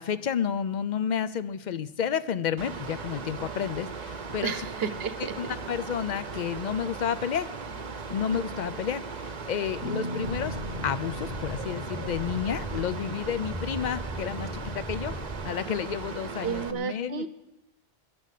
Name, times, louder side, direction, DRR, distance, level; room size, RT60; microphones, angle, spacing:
voice 1, 0.0-4.7 5.2-7.5 8.1-15.2 15.4-17.3, left 8 dB, 55° left, 13 dB, 0.6 m, -31 dB
Mechanical fan, 2.6-16.7, right 4 dB, 40° right, 0.9 m, -38 dB
voice 2, 4.4-5.3 16.4-17.3, right 7 dB, 65° right, 13 dB, 1.0 m, -32 dB
sound 1, 9.8-14.8, left 2 dB, 90° left, 1.7 m, -40 dB
sound 2, 10.2-15.5, right 1 dB, 5° left, 1.0 m, -38 dB
11.0 x 10.5 x 8.3 m, 0.93 s
omnidirectional pair, 1.1 m